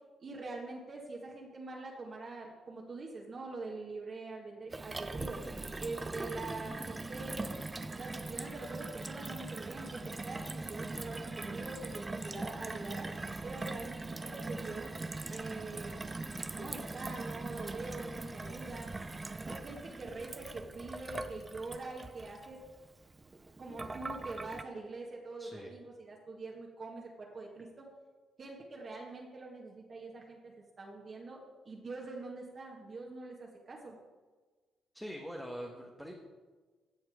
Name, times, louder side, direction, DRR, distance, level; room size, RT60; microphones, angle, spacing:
voice 1, 0.2-5.4 5.8-7.6 8.0-13.1 13.4-14.9 15.3-15.9 16.5-18.9 19.4-22.6 23.6-27.9 28.4-34.0, right 3 dB, 40° right, -2 dB, 1.8 m, -44 dB
Gurgling / Water tap faucet / Sink (filling or washing), 4.7-24.6, right 2 dB, 20° right, 0.6 m, -41 dB
voice 2, 25.4-25.7 34.9-36.1, equal, ahead, 0 dB, 1.4 m, -43 dB
16.0 x 5.9 x 5.0 m, 1.4 s
cardioid pair, 90°, 0 cm